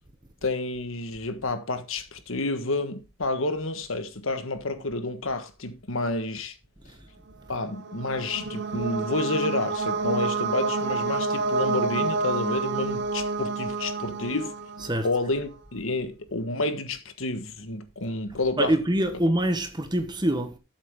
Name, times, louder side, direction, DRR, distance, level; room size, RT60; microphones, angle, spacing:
voice 1, 0.4-6.5 7.5-14.5 15.0-18.8, left 2 dB, 70° left, 1.5 m, -29 dB
sound 1, 7.6-15.3, right 3 dB, 50° right, 0.8 m, -29 dB
voice 2, 18.6-20.6, right 1 dB, 20° right, 1.2 m, -25 dB
13.0 x 7.3 x 3.7 m
head